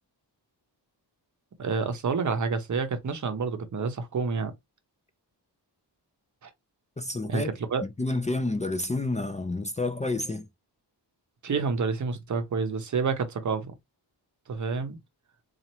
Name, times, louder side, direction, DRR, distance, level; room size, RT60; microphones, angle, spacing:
voice 1, 1.6-4.5 6.4-6.5 7.3-7.8 11.4-13.7 14.5-15.0, right 5 dB, 45° right, 0.7 m, -29 dB
voice 2, 7.0-7.5 7.8-10.5, left 2 dB, 20° left, 0.4 m, -29 dB
4.2 x 2.5 x 2.8 m
wide cardioid pair, 180°, 41 cm